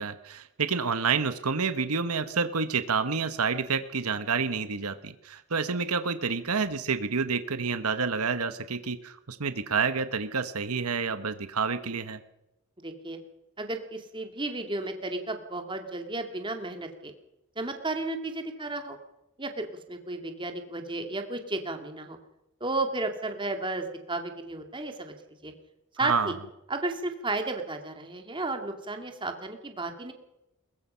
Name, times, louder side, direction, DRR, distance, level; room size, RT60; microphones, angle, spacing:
voice 1, 0.0-12.2 26.0-26.3, right 5 dB, 80° right, 11 dB, 1.2 m, -29 dB
voice 2, 12.8-13.2 13.6-17.1 17.6-19.0 19.4-22.2 22.6-25.1 25.4-25.5 26.0-26.3 26.7-30.1, right 2 dB, 20° right, 5 dB, 2.4 m, -33 dB
21.5 x 21.5 x 5.7 m, 0.91 s
head